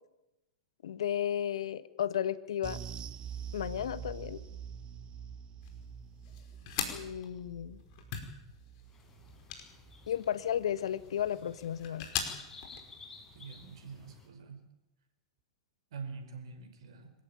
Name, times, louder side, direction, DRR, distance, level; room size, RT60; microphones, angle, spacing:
voice 1, 0.8-2.8 3.5-4.4 6.9-7.8 10.1-12.1, left 10 dB, 70° left, 15 dB, 1.3 m, -33 dB
sound 1, 2.6-11.3 11.6-11.8 12.2-12.3, right 7 dB, 30° right, 1.2 m, -46 dB
sound 2, 5.6-12.8, left 8 dB, 50° left, 5.2 m, -42 dB
sound 3, 8.9-14.3, left 3 dB, 15° left, 7.3 m, -54 dB
voice 2, 13.3-14.6 15.9-17.1, right 5 dB, 65° right, 6 dB, 5.6 m, -45 dB
25.5 x 15.0 x 9.0 m, 0.96 s
hypercardioid pair, 105°, 3 cm